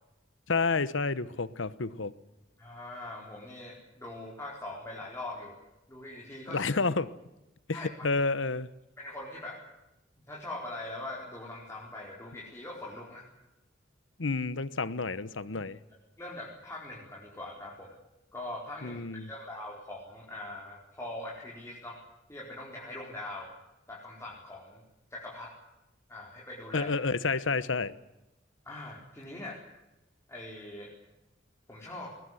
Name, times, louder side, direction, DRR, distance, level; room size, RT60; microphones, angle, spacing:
voice 1, 0.5-2.1 6.5-7.1 7.7-8.7 14.2-15.8 18.8-19.3 26.7-27.9, left 4 dB, 75° left, 16 dB, 1.1 m, -30 dB
voice 2, 2.6-5.6 5.9-6.7 7.7-7.9 9.0-9.6 10.3-13.3 16.2-18.0 18.3-22.0 22.3-23.5 23.9-24.8 25.1-25.5 26.1-26.9 28.6-29.6 30.3-30.9 31.7-32.1, left 1 dB, 15° left, -4 dB, 4.6 m, -42 dB
21.0 x 20.0 x 9.8 m, 0.93 s
head